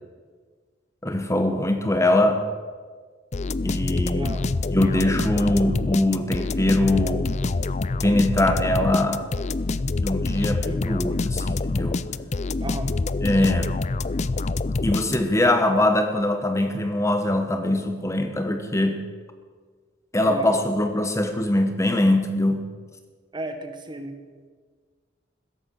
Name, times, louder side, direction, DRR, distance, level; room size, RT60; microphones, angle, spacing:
voice 1, 1.0-2.4 3.6-4.3 4.7-7.3 8.0-9.3 10.0-12.0 13.2-13.7 14.8-19.0 20.1-22.6, left 1 dB, 15° left, 6 dB, 1.1 m, -22 dB
sound 1, 3.3-15.5, left 3 dB, 40° left, 0.5 m, -26 dB
voice 2, 4.1-4.5 10.6-10.9 12.6-12.9 15.3-15.5 20.2-20.6 23.3-24.2, right 1 dB, 25° right, 7 dB, 1.6 m, -34 dB
16.0 x 14.0 x 6.3 m, 1.5 s
head